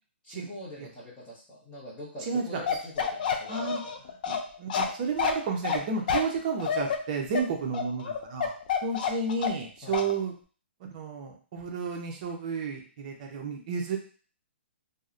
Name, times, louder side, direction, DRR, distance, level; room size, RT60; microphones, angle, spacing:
voice 1, 0.2-3.7 9.8-10.1, left 1 dB, 15° left, -10 dB, 0.7 m, -43 dB
voice 2, 2.2-2.6 3.5-3.8 4.3-8.5 8.8-10.3 10.9-14.0, right 4 dB, 40° right, 2 dB, 0.5 m, -32 dB
Bark, 2.7-9.7 9.9-10.1, left 7 dB, 45° left, 0.4 m, -29 dB
2.7 x 2.0 x 2.4 m, 0.40 s
hypercardioid pair, 160°, 6 cm